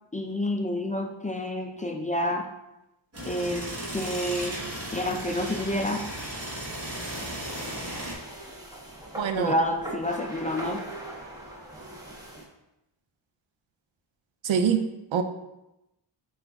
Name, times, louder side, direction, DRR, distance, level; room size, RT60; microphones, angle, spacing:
voice 1, 0.1-2.5 3.2-3.7 3.9-4.6 4.9-6.0 9.3-10.8, left 1 dB, 15° left, 3 dB, 0.4 m, -28 dB
sound 1, 3.1-8.1, right 1 dB, 30° right, 1.3 m, -35 dB
sound 2, 7.4-12.5, right 1 dB, 10° right, 1.0 m, -41 dB
voice 2, 9.2-9.5 14.4-15.2, right 7 dB, 75° right, 8 dB, 0.5 m, -25 dB
5.8 x 2.6 x 3.5 m, 0.93 s
wide cardioid pair, 80°, 47 cm